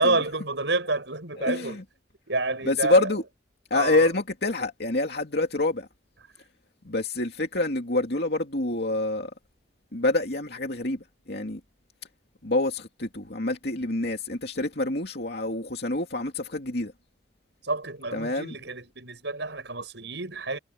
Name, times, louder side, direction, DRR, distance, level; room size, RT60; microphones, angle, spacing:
voice 1, 0.0-1.8 2.3-3.1 3.7-4.1 17.6-20.6, right 3 dB, 70° right, 6.0 m, -28 dB
voice 2, 1.4-1.8 2.7-3.2 3.7-5.9 6.8-9.3 9.9-11.6 12.4-16.9 18.1-18.5, left 2 dB, 60° left, 2.7 m, -26 dB
head